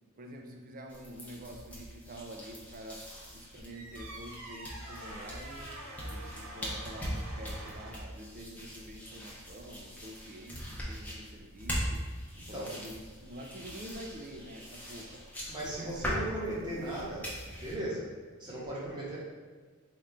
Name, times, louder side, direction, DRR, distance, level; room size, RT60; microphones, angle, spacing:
voice 1, 0.2-5.7 6.0-12.1 12.5-15.2 15.6-15.9, right 1 dB, 40° right, 3 dB, 0.4 m, -47 dB
sound 1, 0.9-17.7, equal, 5° left, 0.7 m, -41 dB
sound 2, 3.7-8.1, right 1 dB, 65° right, 1.3 m, -46 dB
voice 2, 12.3-12.8 15.5-17.3 17.6-19.2, right 1 dB, 20° right, -7 dB, 1.0 m, -37 dB
3.6 x 2.4 x 4.2 m, 1.5 s
head